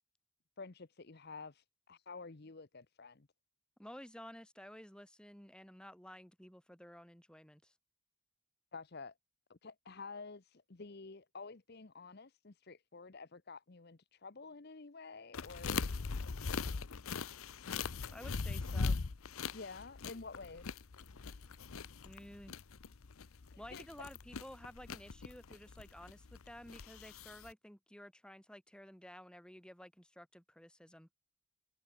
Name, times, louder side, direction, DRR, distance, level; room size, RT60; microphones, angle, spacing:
voice 1, 0.6-3.3 8.7-9.1 9.5-15.8 19.5-20.8 23.5-23.9, left 4 dB, 50° left, 0.9 m, -50 dB
voice 2, 3.8-7.7 18.1-19.0 22.0-22.5 23.6-31.1, equal, 5° left, 2.6 m, -53 dB
sound 1, 15.3-27.5, left 4 dB, 80° left, 0.8 m, -41 dB
head